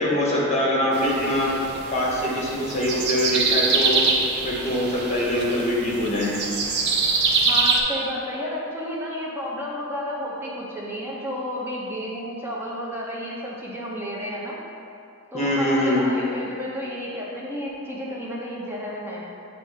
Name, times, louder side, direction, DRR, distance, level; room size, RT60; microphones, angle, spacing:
voice 1, 0.0-1.5 1.9-4.0 4.4-6.3 15.3-16.0, left 1 dB, 35° left, -4 dB, 1.2 m, -23 dB
sound 1, 0.9-7.8, right 4 dB, 55° right, 0.6 m, -24 dB
voice 2, 7.5-14.6 15.3-19.2, equal, 10° right, -5 dB, 0.8 m, -31 dB
7.3 x 2.7 x 4.8 m, 2.5 s
head